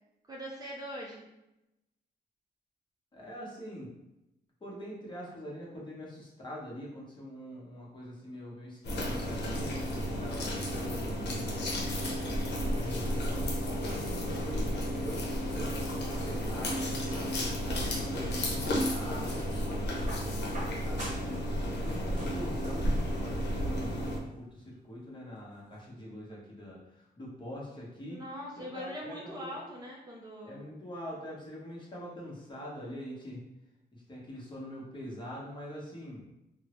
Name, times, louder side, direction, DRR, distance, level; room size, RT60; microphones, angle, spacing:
voice 1, 0.3-1.3 28.1-30.6, equal, 20° right, -3 dB, 0.5 m, -42 dB
voice 2, 3.1-3.9 4.6-12.0 12.6-13.5 13.9-14.7 15.0-28.2 28.6-29.5 30.4-33.4 33.9-36.2, equal, 25° left, -4 dB, 0.9 m, -44 dB
sound 1, 8.8-24.2, equal, 80° left, 0.7 m, -32 dB
sound 2, 18.4-19.3 20.1-21.4 21.7-22.9 24.0-24.1, right 1 dB, 45° right, 0.8 m, -44 dB
3.4 x 2.0 x 2.9 m, 0.89 s
wide cardioid pair, 145°, 17 cm